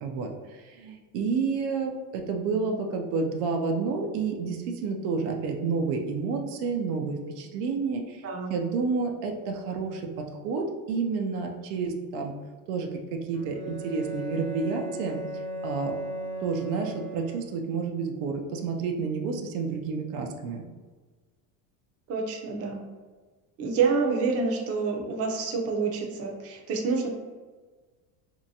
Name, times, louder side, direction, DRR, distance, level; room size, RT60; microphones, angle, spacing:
voice 1, 0.0-8.2 8.5-10.0 10.3-12.3 12.7-15.2 15.6-15.9 16.4-20.6, right 4 dB, 80° right, 2 dB, 0.6 m, -30 dB
voice 2, 8.2-8.5 22.1-22.8 23.6-27.1, right 4 dB, 35° right, 1 dB, 0.5 m, -27 dB
Bowed string instrument, 13.3-17.8, right 1 dB, 30° left, 0.9 m, -37 dB
2.7 x 2.2 x 2.7 m, 1.4 s
supercardioid pair, 100°, 44 cm